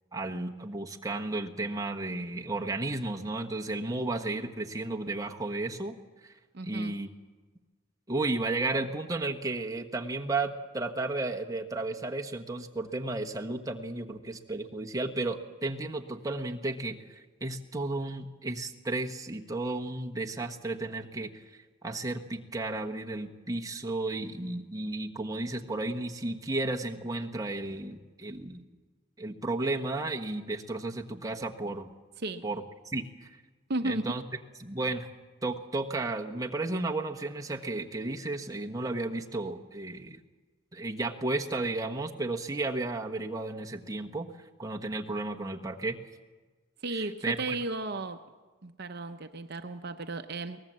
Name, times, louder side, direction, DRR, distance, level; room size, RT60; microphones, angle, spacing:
voice 1, 0.1-6.0 6.2-6.3 6.7-7.1 8.1-21.4 21.8-28.6 29.2-31.9 32.4-33.3 33.8-34.2 34.6-35.1 35.4-40.2 40.7-44.3 44.6-46.0 46.9-47.6, right 2 dB, 15° right, 1 dB, 1.2 m, -33 dB
voice 2, 6.5-7.0 32.2-32.4 33.7-34.1 46.8-48.2 48.6-50.6, right 2 dB, 55° right, 7 dB, 0.8 m, -34 dB
23.0 x 19.0 x 7.5 m, 1.3 s
head